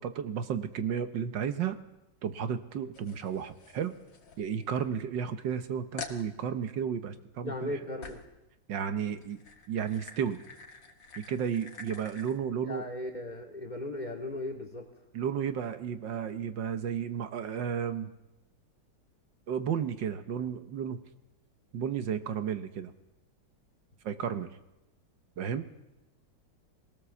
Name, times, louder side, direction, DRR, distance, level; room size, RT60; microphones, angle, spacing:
voice 1, 0.0-1.8 2.2-3.9 4.4-7.8 8.7-9.4 9.7-10.4 11.2-12.9 15.1-18.1 19.5-21.0 21.7-22.9 24.0-24.5 25.4-25.7, right 8 dB, 80° right, 9 dB, 1.7 m, -33 dB
sound 1, 2.9-5.0 5.4-5.5 6.0-6.3 8.0-8.4 9.1-12.4, left 4 dB, 80° left, 2.6 m, -47 dB
voice 2, 7.4-8.2 12.6-14.8, left 1 dB, 25° left, 5 dB, 2.7 m, -37 dB
21.5 x 17.5 x 7.0 m, 0.97 s
omnidirectional pair, 2.0 m